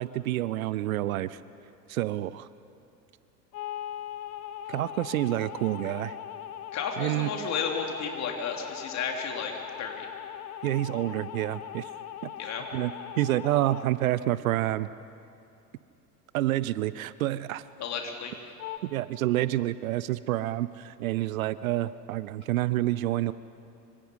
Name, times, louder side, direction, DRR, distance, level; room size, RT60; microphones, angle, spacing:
voice 1, 0.0-1.4 1.9-2.5 4.7-6.2 7.0-7.3 10.6-11.9 12.2-12.3 12.7-14.9 16.3-17.6 18.8-23.3, right 15 dB, 60° right, 17 dB, 0.7 m, -28 dB
sound 1, 3.5-13.9 18.6-18.8, left 10 dB, 65° left, 1.3 m, -40 dB
voice 2, 6.7-9.5 9.8-10.1 12.4-12.6 17.8-18.3, left 6 dB, 35° left, 2 dB, 3.5 m, -33 dB
25.5 x 25.5 x 5.5 m, 2.7 s
figure-of-eight pair, 80°, 47 cm